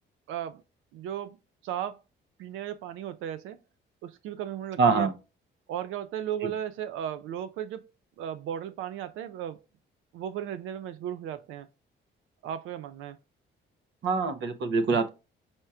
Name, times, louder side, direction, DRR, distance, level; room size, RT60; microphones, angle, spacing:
voice 1, 0.3-0.6 0.9-1.4 1.6-2.0 2.4-3.6 4.0-5.1 5.7-7.8 8.2-9.6 10.1-11.7 12.4-13.2, right 10 dB, 90° right, 0.4 m, -35 dB
voice 2, 4.8-5.1 6.4-6.5 14.0-15.1, right 4 dB, 65° right, 0.9 m, -24 dB
4.3 x 4.3 x 2.3 m
cardioid pair, 90°, 20 cm